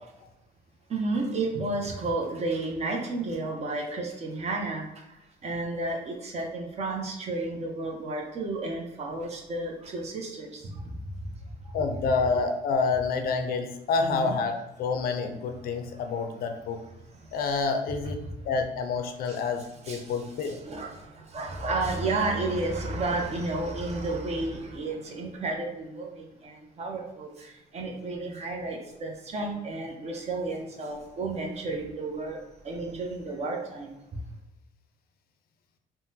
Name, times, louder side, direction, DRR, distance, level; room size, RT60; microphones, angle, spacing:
voice 1, 0.9-5.0 5.4-10.8 11.6-11.7 14.0-14.4 18.0-18.3 19.3-19.4 19.8-32.4 32.6-33.9, right 2 dB, 40° right, 1 dB, 0.7 m, -32 dB
voice 2, 11.7-16.8 17.3-20.6, left 4 dB, 65° left, 6 dB, 0.5 m, -28 dB
3.6 x 2.1 x 2.7 m, 0.95 s
cardioid pair, 110°, 17 cm